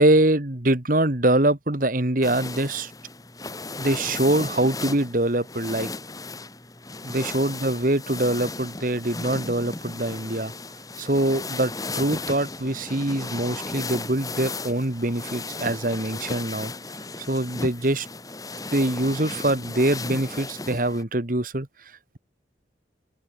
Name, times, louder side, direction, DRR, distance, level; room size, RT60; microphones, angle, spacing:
voice 1, 0.0-2.9 3.8-5.9 7.0-10.5 11.0-16.7 17.2-18.1 18.7-21.7, right 1 dB, 45° right, 1.8 m, -24 dB
sound 1, 2.2-21.0, left 3 dB, 20° left, 2.1 m, -35 dB
open air
head